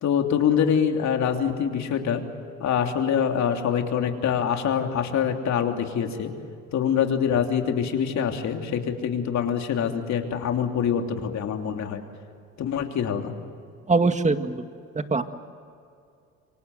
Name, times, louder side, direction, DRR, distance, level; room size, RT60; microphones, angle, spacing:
voice 1, 0.0-2.2 2.6-6.3 6.7-12.0 12.6-13.3, left 8 dB, 60° left, 4 dB, 3.2 m, -25 dB
voice 2, 13.9-14.7 15.0-15.2, right 3 dB, 20° right, 8 dB, 2.0 m, -22 dB
28.0 x 24.5 x 7.9 m, 2.4 s
supercardioid pair, 70°, 32 cm